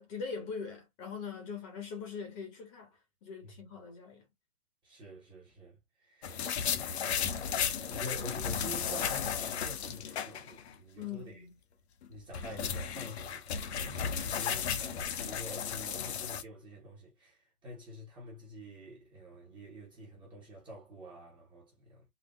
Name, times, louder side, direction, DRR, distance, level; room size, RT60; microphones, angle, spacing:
voice 1, 0.0-4.3 11.0-11.5, left 5 dB, 25° left, 1.0 m, -42 dB
voice 2, 4.8-6.4 6.7-11.4 12.1-22.0, equal, 10° right, 0.9 m, -47 dB
sound 1, 6.2-10.7 11.0-11.1 12.0-16.4, left 7 dB, 45° left, 0.6 m, -34 dB
3.9 x 2.4 x 2.2 m
hypercardioid pair, 150°, 45 cm